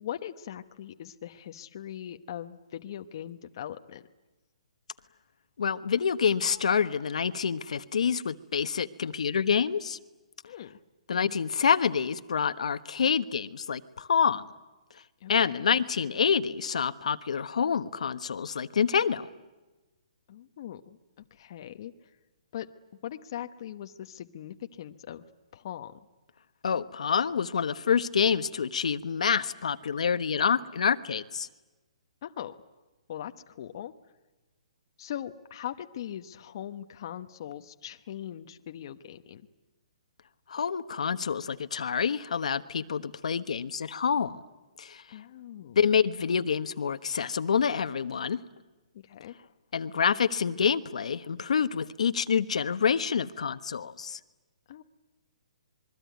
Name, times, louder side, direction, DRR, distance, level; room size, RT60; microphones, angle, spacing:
voice 1, 0.0-4.0 10.5-10.7 15.2-15.7 20.3-21.0 21.3-21.9 22.5-22.7 23.0-25.2 25.5-25.9 32.2-32.5 33.1-33.9 35.0-39.4 45.1-45.8 48.9-49.4 54.7-54.8, left 11 dB, 35° left, 7 dB, 1.0 m, -40 dB
voice 2, 5.6-10.0 11.1-14.5 15.3-19.3 26.6-31.5 40.5-44.4 44.8-45.0 45.8-48.4 49.7-54.2, left 6 dB, 70° left, 11 dB, 1.2 m, -27 dB
26.5 x 22.5 x 9.4 m, 1.1 s
hypercardioid pair, 170°, 4 cm